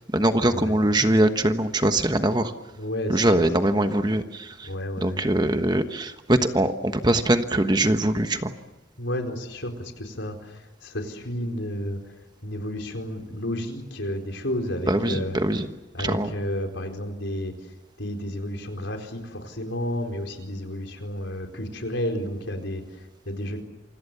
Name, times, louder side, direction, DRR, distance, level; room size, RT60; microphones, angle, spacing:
voice 1, 0.1-2.5 3.1-4.7 5.0-8.5 14.9-15.7 16.0-16.3, right 1 dB, 20° right, 8 dB, 1.2 m, -22 dB
voice 2, 2.8-3.4 4.6-5.2 9.0-15.4 15.9-17.7 18.0-23.6, left 1 dB, 75° left, 4 dB, 4.5 m, -32 dB
27.5 x 26.0 x 7.0 m, 1.0 s
head